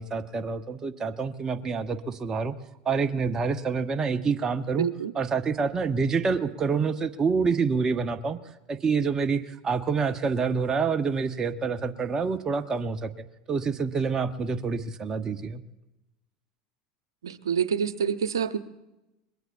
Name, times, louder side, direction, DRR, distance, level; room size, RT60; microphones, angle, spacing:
voice 1, 0.0-2.5 2.8-4.9 5.1-8.4 8.7-15.6, right 5 dB, 30° right, 8 dB, 0.9 m, -27 dB
voice 2, 4.8-5.1 17.2-18.6, right 7 dB, 90° right, 12 dB, 0.7 m, -27 dB
26.5 x 21.5 x 2.5 m, 0.97 s
hypercardioid pair, 90°, 2 cm